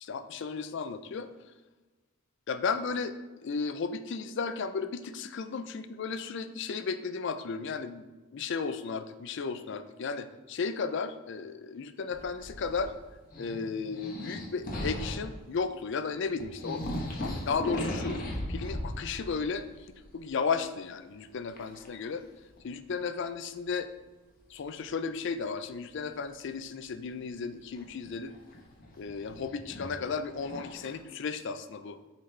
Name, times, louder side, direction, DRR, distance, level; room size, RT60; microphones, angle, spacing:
voice 1, 0.0-1.3 2.5-3.1 3.4-8.0 8.3-12.9 13.4-18.2 18.5-19.6 20.1-22.2 22.6-23.9 24.5-28.3 29.0-32.0, left 5 dB, 55° left, 10 dB, 0.4 m, -34 dB
sound 1, 12.1-13.0 13.3-15.3 16.1-16.2 16.4-19.4 19.7-20.3 21.5-21.9 22.6-22.7 24.6-24.7 27.7-30.9, left 1 dB, 40° left, 1.1 m, -37 dB
7.8 x 4.0 x 3.2 m, 1.2 s
head